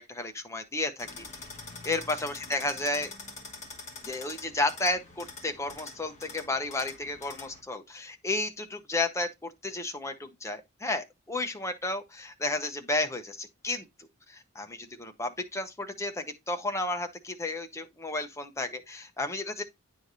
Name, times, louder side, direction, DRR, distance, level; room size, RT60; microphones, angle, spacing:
voice 1, 0.2-1.2 1.8-3.1 4.0-13.9 14.3-19.6, left 2 dB, 15° left, 0.7 m, -32 dB
sound 1, 1.0-7.6, left 3 dB, 30° left, 1.4 m, -45 dB
9.4 x 4.5 x 2.6 m
head